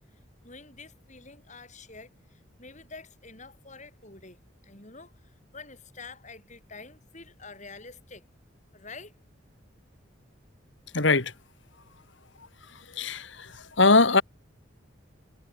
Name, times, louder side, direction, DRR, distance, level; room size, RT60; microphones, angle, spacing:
voice 1, 0.1-8.3 8.7-9.2, left 4 dB, 35° left, 5.8 m, -47 dB
voice 2, 10.9-11.3 12.9-14.2, left 3 dB, 65° left, 2.3 m, -21 dB
head